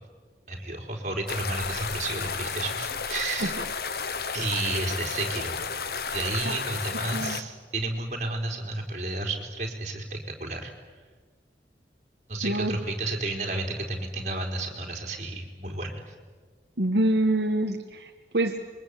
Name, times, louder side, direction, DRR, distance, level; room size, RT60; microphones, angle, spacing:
voice 1, 0.5-3.6 4.3-5.6 6.1-10.7 12.3-16.1, right 2 dB, 40° right, 2 dB, 4.2 m, -32 dB
sound 1, 1.3-7.4, left 5 dB, 60° left, 1.1 m, -32 dB
voice 2, 12.4-12.8 16.8-18.6, right 1 dB, 70° right, 3 dB, 1.5 m, -26 dB
27.0 x 23.0 x 8.5 m, 1.4 s
head